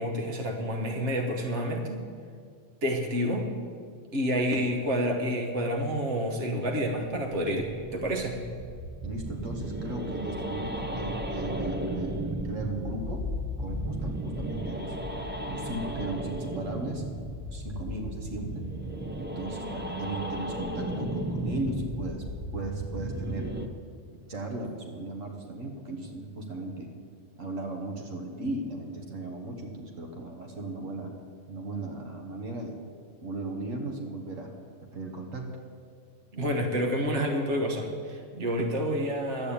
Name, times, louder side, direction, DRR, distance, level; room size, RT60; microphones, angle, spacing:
voice 1, 0.0-2.0 2.8-3.5 4.1-8.4 36.3-39.5, equal, 65° right, 2 dB, 1.7 m, -29 dB
sound 1, 6.6-23.7, right 1 dB, 10° right, 0.7 m, -35 dB
voice 2, 9.0-13.3 13.6-15.0 15.5-17.0 17.5-18.6 19.2-22.2 22.5-23.5 24.1-26.9 27.4-31.1 31.5-32.8 33.2-34.5 34.9-35.6, right 2 dB, 80° right, 2 dB, 1.7 m, -36 dB
11.5 x 8.6 x 8.6 m, 2.1 s
omnidirectional pair, 1.3 m